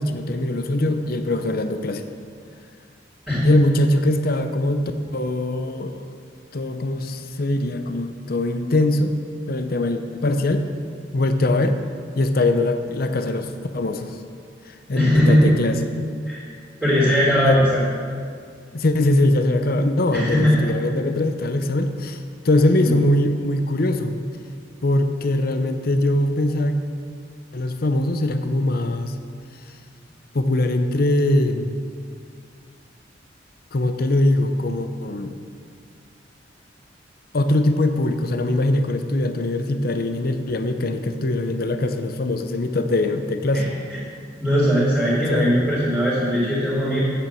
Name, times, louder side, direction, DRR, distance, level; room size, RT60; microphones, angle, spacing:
voice 1, 0.0-2.0 3.4-6.1 6.5-9.1 9.5-10.6 11.1-11.8 12.2-14.2 14.7-15.9 17.4-17.6 18.7-24.2 24.8-26.8 27.5-29.1 30.3-31.8 33.7-35.3 37.3-43.8 45.2-45.6, left 1 dB, 55° left, 7 dB, 0.7 m, -22 dB
voice 2, 14.9-15.5 16.2-16.4 16.8-17.8 20.1-20.7 22.8-22.9 43.5-43.6 44.4-47.0, equal, 5° right, -13 dB, 3.3 m, -19 dB
9.3 x 8.2 x 7.1 m, 2.1 s
head